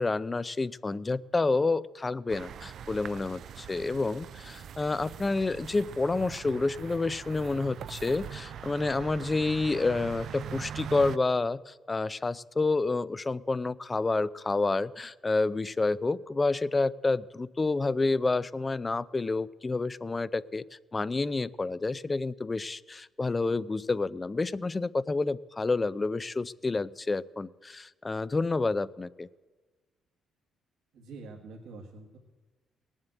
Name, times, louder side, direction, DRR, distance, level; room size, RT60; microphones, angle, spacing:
voice 1, 0.0-29.3, left 3 dB, 25° left, 18 dB, 0.5 m, -29 dB
sound 1, 2.3-11.2, right 9 dB, 65° right, 0.4 m, -42 dB
voice 2, 30.9-32.2, right 3 dB, 85° right, -1 dB, 1.8 m, -46 dB
18.5 x 7.3 x 9.1 m, 1.3 s
cardioid pair, 90°, 0 cm